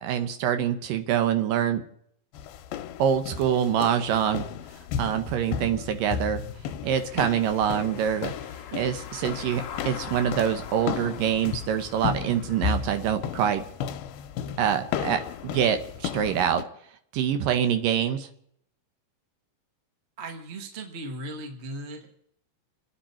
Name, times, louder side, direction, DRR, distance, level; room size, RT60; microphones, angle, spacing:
voice 1, 0.0-1.8 3.0-4.5 5.0-6.4 6.8-8.3 8.7-13.6 14.6-16.6 17.1-18.3, right 9 dB, 75° right, 8 dB, 2.5 m, -25 dB
sound 1, 2.3-16.6, left 8 dB, 85° left, 2.6 m, -34 dB
Car passing by / Engine, 6.3-13.0, left 8 dB, 65° left, 1.5 m, -43 dB
voice 2, 20.2-22.1, right 1 dB, 35° right, 4 dB, 1.0 m, -37 dB
28.5 x 9.6 x 4.4 m, 0.69 s
omnidirectional pair, 4.2 m